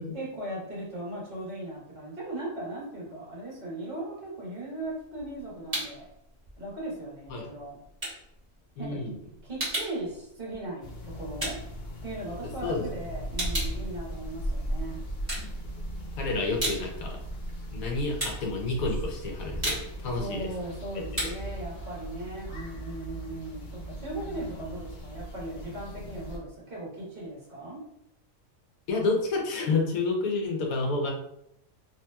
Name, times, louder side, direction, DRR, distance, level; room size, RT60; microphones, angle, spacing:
voice 1, 0.1-6.1 6.6-7.8 8.8-9.0 9.4-11.6 12.0-15.0 20.1-27.8, right 1 dB, 45° right, -6 dB, 1.3 m, -38 dB
sound 1, 4.8-6.1 6.4-12.6 13.0-14.7 15.1-16.0 16.3-23.0, right 1 dB, 15° right, 1.3 m, -36 dB
voice 2, 8.8-9.1 12.6-12.8 16.2-17.2 17.7-20.5 21.2-21.3 28.9-31.1, left 3 dB, 90° left, 1 dB, 1.2 m, -29 dB
sound 2, 10.8-26.4, right 1 dB, 55° left, 0.5 m, -37 dB
3.2 x 2.9 x 2.2 m, 0.77 s
omnidirectional pair, 1.4 m